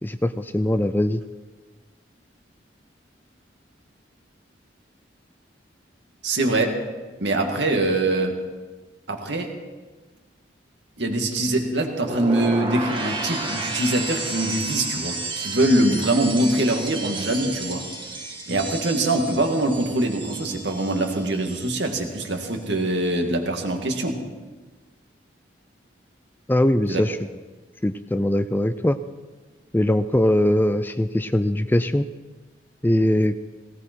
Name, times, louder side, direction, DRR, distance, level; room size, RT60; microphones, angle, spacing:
voice 1, 0.0-1.2 26.5-27.2 27.8-29.0 29.7-32.1 32.8-33.4, left 1 dB, 10° left, 11 dB, 0.4 m, -21 dB
voice 2, 6.2-6.8 7.2-8.4 9.1-9.5 11.0-17.9 18.5-24.2 26.9-27.0, right 1 dB, 70° right, 3 dB, 2.2 m, -23 dB
sound 1, 11.8-21.9 22.2-22.7, right 3 dB, 25° right, 1.6 m, -32 dB
18.0 x 17.5 x 4.6 m, 1.3 s
head